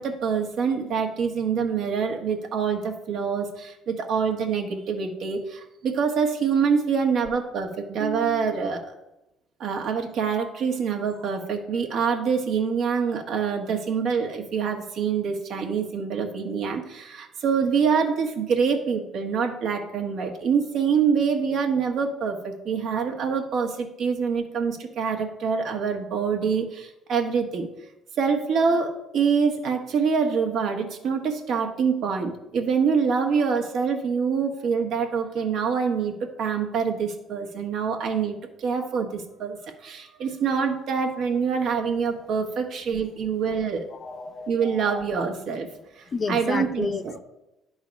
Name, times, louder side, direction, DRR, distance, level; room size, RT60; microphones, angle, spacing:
voice 1, 0.0-8.9 9.6-27.7 28.2-43.9 44.5-45.7 46.0-47.2, right 6 dB, 65° right, 3 dB, 1.4 m, -25 dB
voice 2, 43.9-45.0 46.1-47.2, left 4 dB, 40° left, 11 dB, 0.5 m, -31 dB
10.5 x 4.0 x 5.2 m, 0.93 s
supercardioid pair, 85°, 0 cm